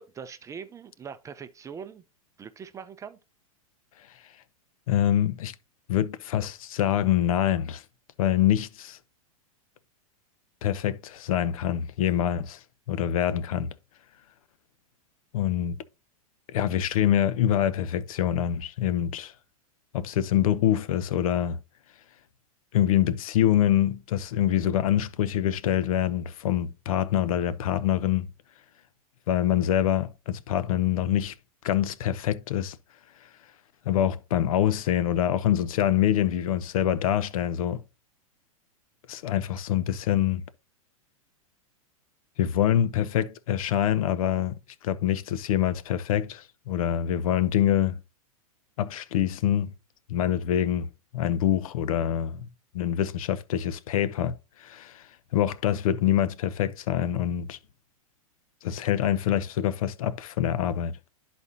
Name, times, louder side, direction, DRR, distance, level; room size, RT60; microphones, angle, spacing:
voice 1, 0.0-2.0 2.4-3.2, right 7 dB, 15° right, 0.5 m, -42 dB
voice 2, 4.9-5.5 5.9-7.8 8.2-9.0 10.6-12.6 12.9-13.7 15.3-15.8 16.5-19.3 19.9-21.6 22.7-28.3 29.3-31.3 31.6-32.8 33.9-37.8 39.1-40.4 42.4-44.6 44.8-48.0 48.8-49.7 50.1-50.9 51.1-52.5 52.7-55.0 55.3-57.6 58.6-60.9, left 11 dB, 70° left, 0.7 m, -25 dB
12.5 x 4.2 x 2.6 m
hypercardioid pair, 120°, 19 cm